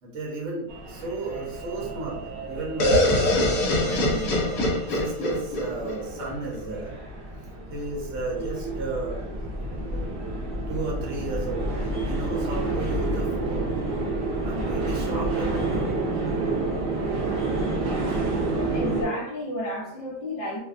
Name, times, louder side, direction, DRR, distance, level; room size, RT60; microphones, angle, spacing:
voice 1, 0.0-2.2 2.5-6.9 7.7-9.2 9.8-10.4 10.7-13.7 14.4-15.9, right 2 dB, 55° right, -2 dB, 1.0 m, -34 dB
sound 1, 0.7-19.0, right 2 dB, 75° right, 0.5 m, -30 dB
sound 2, 2.8-6.6, left 1 dB, 70° left, 1.0 m, -24 dB
voice 2, 18.7-20.6, left 1 dB, 50° left, -2 dB, 0.5 m, -31 dB
2.7 x 2.1 x 2.4 m, 0.75 s
omnidirectional pair, 1.6 m